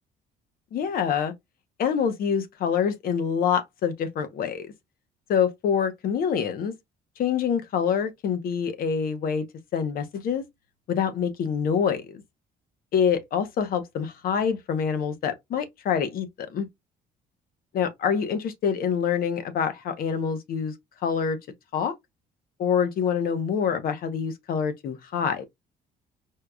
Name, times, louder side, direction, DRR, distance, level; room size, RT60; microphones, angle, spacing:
voice 1, 0.7-1.3 1.8-4.7 5.3-6.7 7.2-9.5 9.7-10.5 10.9-12.2 12.9-16.7 17.7-20.7 21.0-21.4 21.7-21.9 22.6-25.4, left 7 dB, 60° left, 0.8 m, -26 dB
4.6 x 2.3 x 2.3 m
cardioid pair, 110°, 17 cm